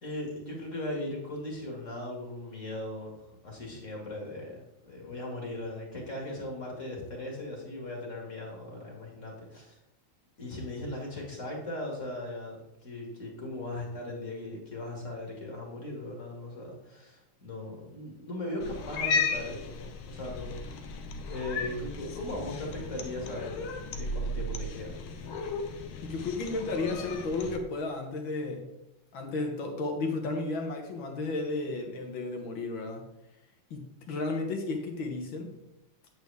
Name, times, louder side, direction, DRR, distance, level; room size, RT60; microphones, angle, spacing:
voice 1, 0.0-9.8 10.4-20.9 21.3-23.7 24.0-25.0, left 1 dB, 35° left, -1 dB, 2.4 m, -38 dB
Cat, 18.6-27.6, left 3 dB, 90° left, 1.8 m, -35 dB
voice 2, 26.0-28.7 29.1-33.0 33.7-35.5, left 3 dB, 70° left, 3 dB, 2.0 m, -33 dB
8.6 x 8.0 x 3.4 m, 0.87 s
omnidirectional pair, 2.2 m